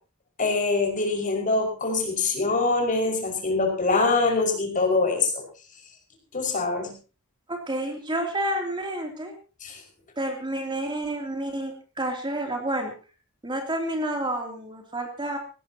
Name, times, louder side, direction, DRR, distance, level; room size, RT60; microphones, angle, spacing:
voice 1, 0.4-5.4 6.3-6.9 9.6-9.8, left 3 dB, 40° left, 3 dB, 5.5 m, -24 dB
voice 2, 7.5-9.3 10.2-12.9 13.4-15.4, right 1 dB, 25° right, 3 dB, 3.0 m, -29 dB
19.5 x 17.5 x 2.9 m, 0.35 s
head